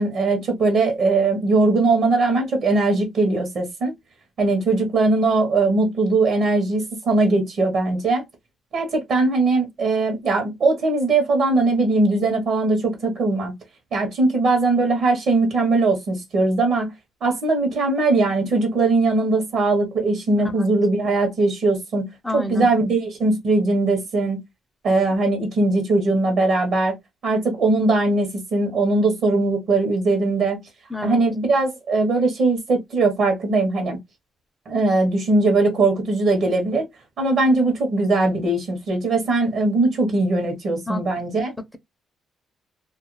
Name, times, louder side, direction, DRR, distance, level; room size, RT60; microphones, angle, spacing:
voice 1, 0.0-3.9 4.4-8.2 8.7-13.5 13.9-16.9 17.2-24.4 24.8-27.0 27.2-30.6 31.0-34.0 34.7-36.9 37.2-41.5, right 3 dB, 65° right, 0.9 m, -20 dB
voice 2, 22.2-22.7 30.9-31.2 40.9-41.0, left 1 dB, 5° left, 0.6 m, -28 dB
2.4 x 2.2 x 3.0 m
cardioid pair, 90°, 0 cm